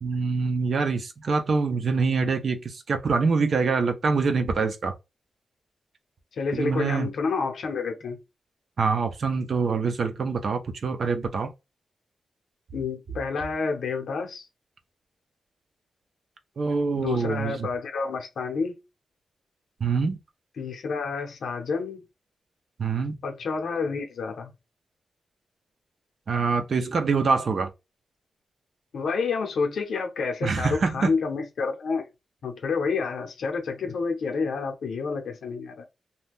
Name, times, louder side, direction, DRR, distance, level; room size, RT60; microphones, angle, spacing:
voice 1, 0.0-4.9 6.5-7.1 8.8-11.5 16.6-17.7 19.8-20.2 22.8-23.2 26.3-27.7 30.4-31.1, right 4 dB, 55° right, 0.6 m, -25 dB
voice 2, 6.3-8.2 12.7-14.5 17.0-18.8 20.6-22.1 23.2-24.5 28.9-32.1 32.4-35.8, left 4 dB, 80° left, 0.8 m, -29 dB
2.7 x 2.3 x 3.5 m
wide cardioid pair, 135°, 0 cm